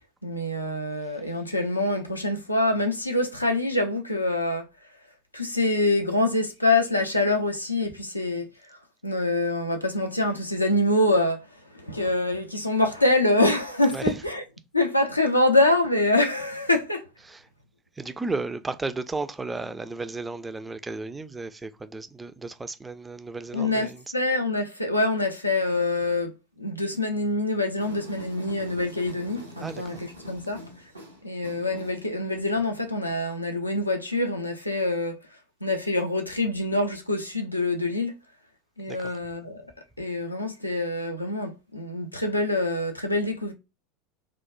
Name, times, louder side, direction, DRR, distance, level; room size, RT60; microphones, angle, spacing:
voice 1, 0.2-4.7 5.3-8.8 9.0-14.4 14.7-17.1 23.5-30.6 31.2-35.2 35.6-38.1 38.8-39.7 40.0-43.5, left 2 dB, 85° left, 0.4 m, -25 dB
voice 2, 18.0-24.0 29.6-30.0 38.9-39.1, right 3 dB, 15° right, 0.3 m, -33 dB
sound 1, 27.8-32.9, equal, 90° right, 0.5 m, -43 dB
2.9 x 2.0 x 2.5 m
figure-of-eight pair, 80°, 0 cm